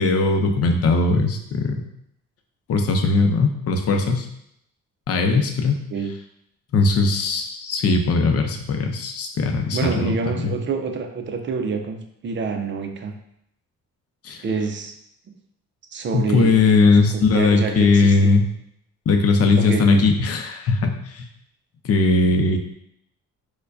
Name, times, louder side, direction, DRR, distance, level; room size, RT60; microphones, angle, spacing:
voice 1, 0.0-1.8 2.7-4.3 5.1-5.8 6.7-10.5 14.2-14.4 16.1-18.4 19.1-21.2 21.8-22.6, left 3 dB, 55° left, 4 dB, 0.6 m, -19 dB
voice 2, 9.7-13.2 14.4-14.9 15.3-15.4 15.9-18.3 19.6-20.0, right 4 dB, 40° right, 6 dB, 0.5 m, -27 dB
4.4 x 2.2 x 2.5 m, 0.73 s
cardioid pair, 90°, 30 cm